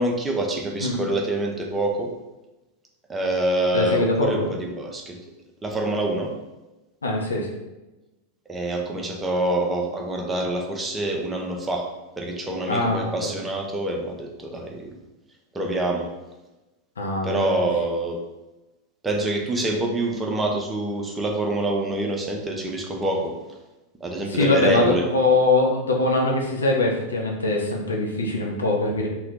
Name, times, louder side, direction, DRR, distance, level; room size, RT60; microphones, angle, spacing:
voice 1, 0.0-2.1 3.1-5.2 5.6-6.3 8.5-11.9 12.2-14.9 15.5-16.1 17.2-18.2 19.0-23.3 24.0-25.0, right 1 dB, 15° right, 0 dB, 0.5 m, -26 dB
voice 2, 3.7-4.5 7.0-7.5 12.7-13.1 17.0-17.6 24.3-29.1, left 2 dB, 70° left, 0 dB, 0.5 m, -22 dB
2.7 x 2.2 x 3.4 m, 1.0 s
figure-of-eight pair, 90°, 0 cm